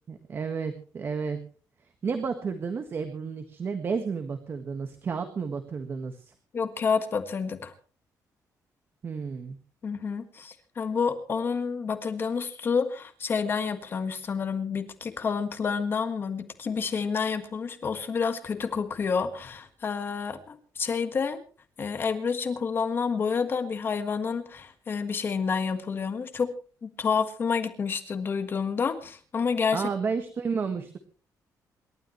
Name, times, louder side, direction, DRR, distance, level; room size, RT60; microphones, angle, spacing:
voice 1, 0.1-1.4 2.0-6.3 9.0-9.6 29.7-31.0, right 5 dB, 35° right, 7 dB, 1.6 m, -31 dB
voice 2, 6.5-7.7 9.8-21.4 21.8-26.5 26.8-29.9, left 5 dB, 35° left, 8 dB, 1.6 m, -29 dB
27.5 x 12.5 x 3.2 m, 0.39 s
cardioid pair, 170°, 7 cm